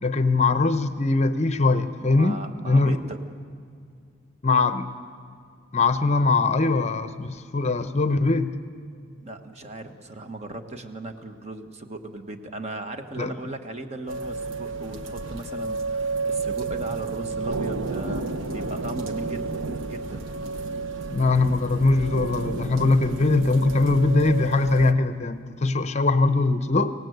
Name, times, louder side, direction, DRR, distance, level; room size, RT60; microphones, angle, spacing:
voice 1, 0.0-3.0 4.4-4.9 5.7-8.5 13.2-13.3 21.1-26.9, left 3 dB, 35° left, 11 dB, 0.7 m, -21 dB
voice 2, 2.0-3.3 9.2-20.3, right 2 dB, 35° right, 7 dB, 1.2 m, -37 dB
sound 1, 14.1-24.9, right 3 dB, 85° right, 1.0 m, -31 dB
25.5 x 17.5 x 7.9 m, 2.3 s
head